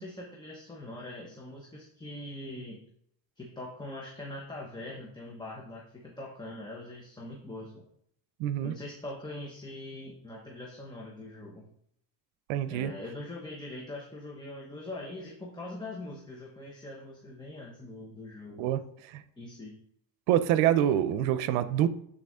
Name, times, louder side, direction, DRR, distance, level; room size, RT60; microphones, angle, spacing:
voice 1, 0.0-2.8 3.4-7.8 8.6-11.6 12.7-18.8 19.4-19.7, left 2 dB, 10° left, -2 dB, 1.0 m, -42 dB
voice 2, 8.4-8.7 12.5-12.9 18.6-19.2 20.3-21.9, right 11 dB, 90° right, 13 dB, 0.7 m, -26 dB
9.0 x 4.2 x 3.6 m, 0.69 s
cardioid pair, 130°, 46 cm